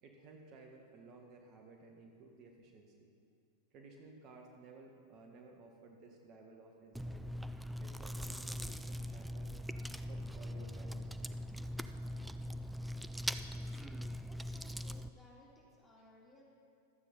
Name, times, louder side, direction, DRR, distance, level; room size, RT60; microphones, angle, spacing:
voice 1, 0.0-3.1 3.7-7.3 7.8-9.5 10.0-11.4, right 3 dB, 40° right, 1 dB, 1.6 m, -57 dB
Chewing mastication, 6.9-15.1, equal, 5° right, 0.4 m, -41 dB
voice 2, 14.2-16.4, left 1 dB, 10° left, -4 dB, 3.1 m, -62 dB
12.5 x 8.3 x 5.5 m, 2.3 s
hypercardioid pair, 95°, 0 cm